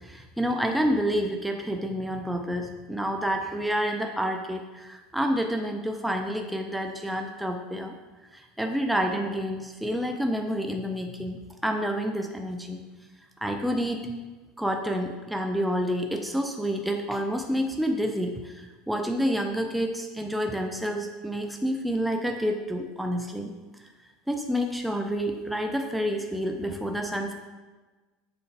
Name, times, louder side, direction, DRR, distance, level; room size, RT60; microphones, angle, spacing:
voice 1, 0.0-8.0 8.3-12.8 13.4-14.1 14.6-23.5 24.3-27.3, equal, ahead, 3 dB, 0.4 m, -29 dB
7.0 x 4.5 x 3.3 m, 1.3 s
supercardioid pair, 155°, 0 cm